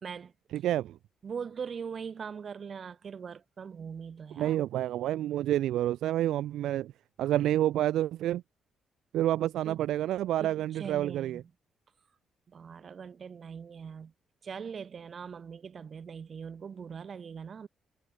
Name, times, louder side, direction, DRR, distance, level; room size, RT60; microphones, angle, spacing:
voice 1, 0.0-0.3 1.2-4.6 9.6-9.8 10.4-11.4 12.5-14.1 14.4-17.7, right 6 dB, 45° right, 1.5 m, -41 dB
voice 2, 0.5-1.0 4.4-6.9 7.2-8.4 9.1-11.4, right 13 dB, 80° right, 0.3 m, -28 dB
cardioid pair, 90°, 0 cm